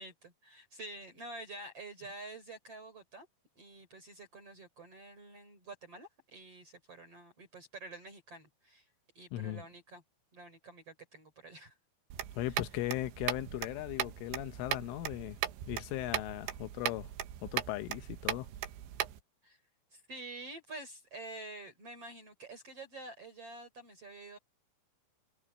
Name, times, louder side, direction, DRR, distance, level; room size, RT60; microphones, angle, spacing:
voice 1, 0.0-3.3 3.6-8.9 9.1-10.0 10.3-11.8 12.5-12.6 19.4-19.6 19.9-24.4, right 2 dB, 35° right, 4.4 m, -48 dB
voice 2, 9.3-9.6 12.4-15.4 15.7-17.1 17.4-18.5, left 16 dB, 85° left, 3.5 m, -38 dB
sound 1, 12.1-19.2, right 12 dB, 75° right, 3.5 m, -38 dB
omnidirectional pair, 5.5 m